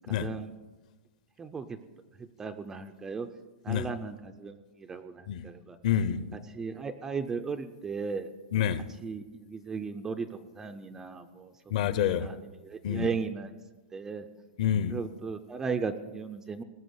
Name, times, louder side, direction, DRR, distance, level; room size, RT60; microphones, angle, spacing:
voice 1, 0.1-0.5 1.4-1.8 2.2-3.3 3.6-5.8 6.5-8.3 9.0-11.5 11.9-13.5 13.9-14.3 14.9-16.6, right 5 dB, 10° right, 0.4 m, -36 dB
voice 2, 5.8-6.4 8.5-8.9 11.7-12.3 12.8-13.1 14.6-15.0, left 9 dB, 40° left, 0.7 m, -28 dB
19.0 x 6.9 x 9.6 m
supercardioid pair, 180°, 6 cm